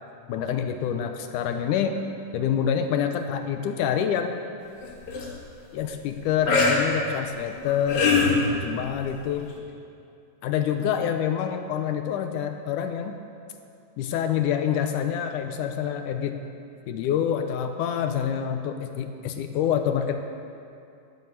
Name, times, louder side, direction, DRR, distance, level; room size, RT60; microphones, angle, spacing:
voice 1, 0.3-2.0 2.3-4.4 5.7-8.1 8.4-9.5 10.4-13.2 14.0-16.5 16.9-20.2, left 8 dB, 80° left, 6 dB, 2.1 m, -27 dB
sound 1, 4.8-5.3 6.5-6.8 7.6-8.4 9.6-9.7, left 4 dB, 60° left, 3.0 m, -21 dB
11.0 x 9.5 x 8.1 m, 2.5 s
omnidirectional pair, 3.9 m